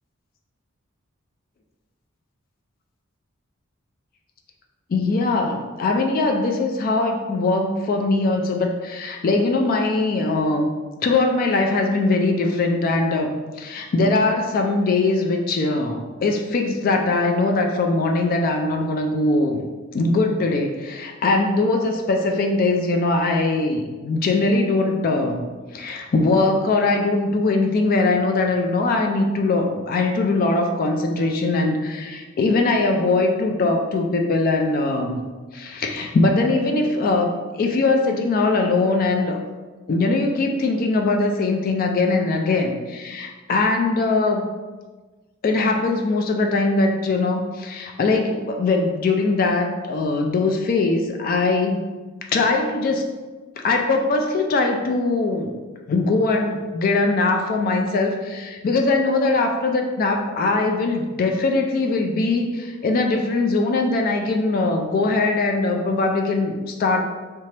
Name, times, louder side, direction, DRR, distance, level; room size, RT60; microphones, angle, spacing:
voice 1, 4.9-10.7 11.0-19.6 19.9-25.4 25.7-35.2 35.5-39.4 39.9-44.5 45.4-51.8 52.3-53.1 53.6-55.5 55.9-67.1, left 3 dB, 45° left, 3 dB, 0.3 m, -21 dB
3.3 x 2.8 x 3.2 m, 1.3 s
head